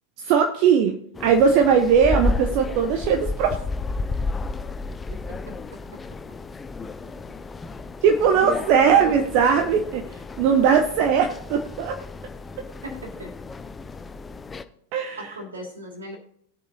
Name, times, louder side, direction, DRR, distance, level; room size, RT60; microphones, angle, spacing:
voice 1, 0.2-0.9 1.2-3.6 8.0-10.0 10.4-12.0 14.9-15.2, right 7 dB, 45° right, 5 dB, 0.9 m, -19 dB
sound 1, 1.2-14.6, left 3 dB, 15° left, 0.6 m, -32 dB
voice 2, 5.1-6.2 7.0-7.1 12.8-13.4 15.2-16.2, equal, 70° right, 0 dB, 3.1 m, -39 dB
20.0 x 6.8 x 2.8 m, 0.68 s
figure-of-eight pair, 90°, 0 cm